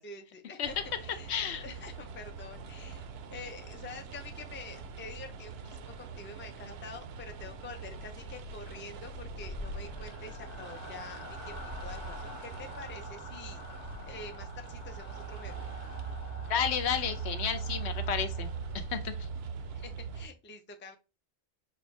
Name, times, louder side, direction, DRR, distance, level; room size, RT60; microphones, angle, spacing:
voice 1, 0.0-1.3 1.6-15.7 19.7-21.0, left 3 dB, 15° left, 5 dB, 0.4 m, -47 dB
sound 1, 0.6-20.3, right 5 dB, 65° right, 0.8 m, -41 dB
voice 2, 1.3-1.6 16.5-18.5 18.9-19.1, left 8 dB, 70° left, 9 dB, 0.9 m, -31 dB
sound 2, 9.0-18.9, left 1 dB, 40° left, 0.9 m, -46 dB
5.9 x 2.7 x 3.2 m, 0.30 s
omnidirectional pair, 1.2 m